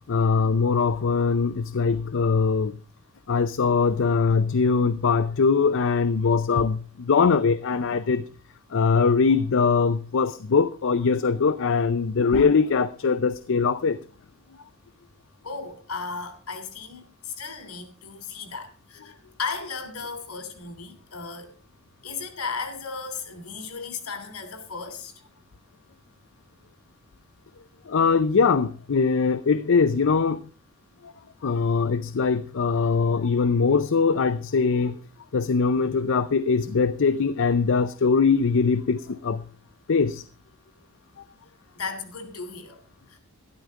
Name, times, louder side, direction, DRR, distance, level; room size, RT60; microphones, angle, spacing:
voice 1, 0.1-2.8 3.3-8.2 8.7-14.0 27.9-30.4 31.4-35.0 35.3-39.4 39.9-40.2, left 5 dB, 60° left, 0.5 m, -22 dB
voice 2, 15.4-21.5 22.0-25.1 41.7-42.8 43.1-43.2, left 5 dB, 80° left, 3.1 m, -35 dB
12.5 x 11.5 x 3.6 m
head